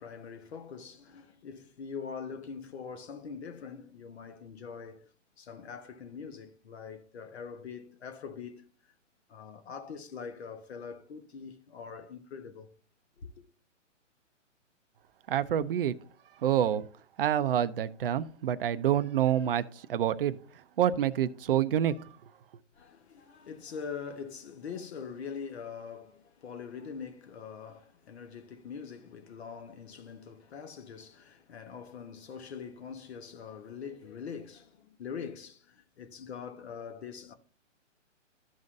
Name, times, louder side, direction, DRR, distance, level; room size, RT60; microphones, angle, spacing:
voice 1, 0.0-5.1 5.4-8.9 9.3-12.7 13.2-13.3 22.7-37.3, left 6 dB, 55° left, 1.3 m, -43 dB
voice 2, 15.3-16.0 16.4-16.9 17.2-20.4 20.8-22.1, right 10 dB, 45° right, 0.6 m, -27 dB
13.5 x 5.3 x 2.5 m
hypercardioid pair, 145°, 38 cm